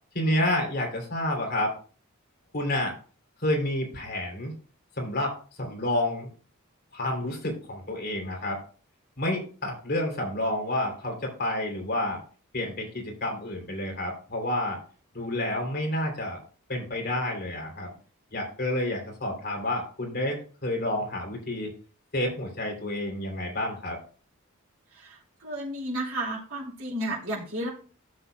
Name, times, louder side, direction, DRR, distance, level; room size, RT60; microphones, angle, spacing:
voice 1, 0.1-1.7 2.5-2.9 3.4-4.5 5.0-6.3 6.9-8.6 9.2-12.2 12.5-14.8 15.1-16.4 16.7-17.9 18.3-21.7 22.1-24.0, left 1 dB, 50° left, 1 dB, 3.1 m, -29 dB
voice 2, 24.9-27.7, right 1 dB, 75° right, -4 dB, 3.2 m, -33 dB
14.0 x 7.2 x 2.3 m, 0.40 s
head